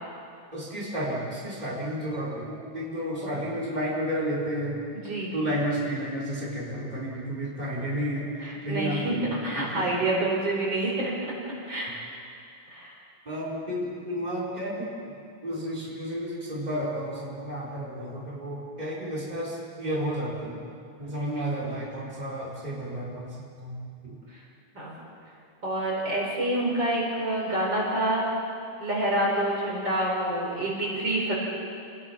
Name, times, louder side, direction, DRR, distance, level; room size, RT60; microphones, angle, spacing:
voice 1, 0.5-4.8 5.3-10.0 13.2-14.9 15.4-20.6 21.0-24.2, equal, 15° right, -7 dB, 5.1 m, -32 dB
voice 2, 4.9-5.3 8.4-11.1 11.6-11.9 12.7-12.9 24.3-24.4 24.7-25.0 25.6-28.3 28.8-31.3, right 1 dB, 55° right, -4 dB, 5.6 m, -27 dB
28.5 x 21.0 x 6.0 m, 2.4 s
omnidirectional pair, 2.4 m